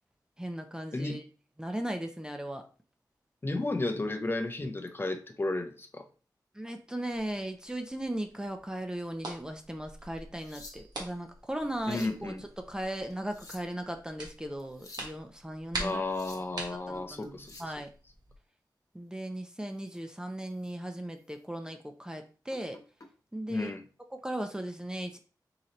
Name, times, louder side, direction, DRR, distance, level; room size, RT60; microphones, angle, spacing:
voice 1, 0.4-1.2 1.6-2.6 6.6-16.0 16.9-17.9 18.9-22.8 23.3-23.7 24.2-25.2, right 1 dB, 10° right, 5 dB, 0.6 m, -37 dB
voice 2, 3.4-6.1 11.9-12.4 15.8-17.7 23.5-23.8, left 2 dB, 30° left, 7 dB, 0.7 m, -33 dB
sound 1, 7.1-18.4, right 2 dB, 65° right, 1.4 m, -45 dB
sound 2, 10.2-11.1 11.6-12.2 13.1-13.8 14.6-15.1 15.9-16.5 17.2-17.8 19.8-20.0 20.5-20.7 21.2-21.3 22.5-23.1 24.2-24.4, left 2 dB, 45° left, 1.1 m, -51 dB
3.9 x 3.1 x 4.2 m, 0.36 s
wide cardioid pair, 100°, 7 cm